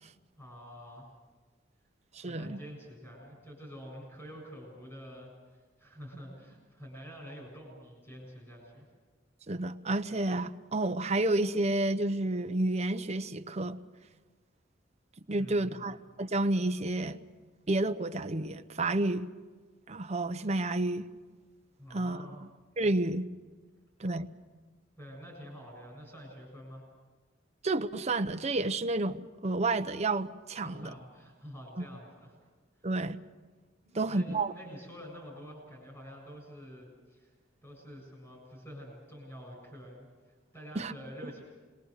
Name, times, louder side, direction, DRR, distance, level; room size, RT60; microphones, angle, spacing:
voice 1, 0.4-1.1 2.2-8.9 15.3-15.9 21.8-22.4 25.0-26.9 30.6-32.4 32.8-32.9 33.8-37.3 37.6-41.4, equal, 15° left, 7.1 m, -48 dB
voice 2, 2.1-2.6 9.5-13.8 15.3-17.2 17.7-19.3 19.9-21.1 21.9-22.3 22.8-23.3 24.0-24.3 27.6-30.9 32.8-33.2 33.9-34.5 40.7-40.9, right 2 dB, 35° right, 0.9 m, -30 dB
28.0 x 21.5 x 6.7 m
head